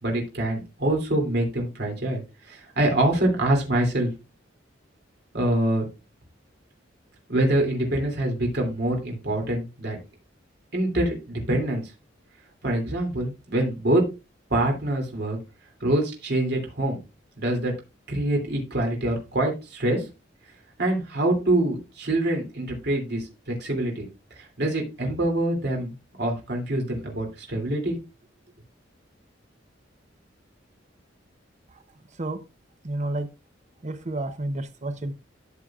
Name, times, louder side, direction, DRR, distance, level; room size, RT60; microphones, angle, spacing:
voice 1, 0.0-4.1 5.3-5.8 7.3-10.0 10.7-11.9 12.6-14.0 14.5-15.4 15.8-17.0 17.4-17.7 18.1-20.0 20.8-24.1 24.4-28.0, right 1 dB, 60° right, 1 dB, 2.9 m, -25 dB
voice 2, 32.8-33.3 33.8-35.1, right 2 dB, 40° right, 10 dB, 0.8 m, -30 dB
12.5 x 6.9 x 2.4 m, 0.28 s
head